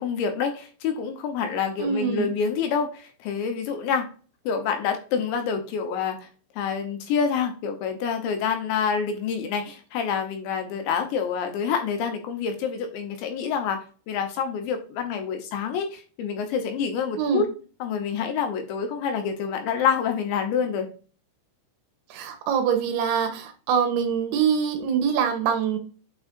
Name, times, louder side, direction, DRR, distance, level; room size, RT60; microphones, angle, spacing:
voice 1, 0.0-4.1 4.5-6.3 6.6-17.5 17.8-20.9, left 6 dB, 75° left, 5 dB, 3.0 m, -27 dB
voice 2, 1.8-2.3 17.2-17.4 22.1-25.8, right 7 dB, 75° right, 6 dB, 3.2 m, -24 dB
8.9 x 4.9 x 2.5 m, 0.37 s
omnidirectional pair, 5.7 m